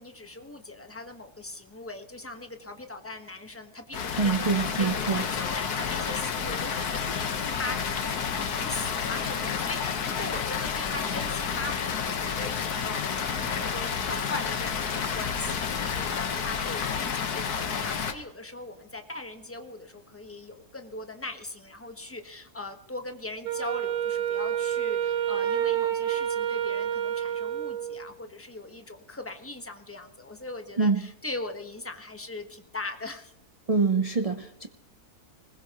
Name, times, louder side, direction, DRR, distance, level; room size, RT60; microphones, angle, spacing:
voice 1, 0.0-13.1 13.4-33.3, left 2 dB, 10° left, 5 dB, 1.0 m, -40 dB
Water, 3.9-18.1, left 6 dB, 75° left, 1.7 m, -30 dB
voice 2, 4.2-5.2 30.8-31.1 33.7-34.7, right 4 dB, 45° right, 5 dB, 0.4 m, -25 dB
Wind instrument woodwind instrument, 23.4-28.1, right 10 dB, 75° right, 1.5 m, -28 dB
20.5 x 20.0 x 3.0 m, 0.79 s
omnidirectional pair, 1.7 m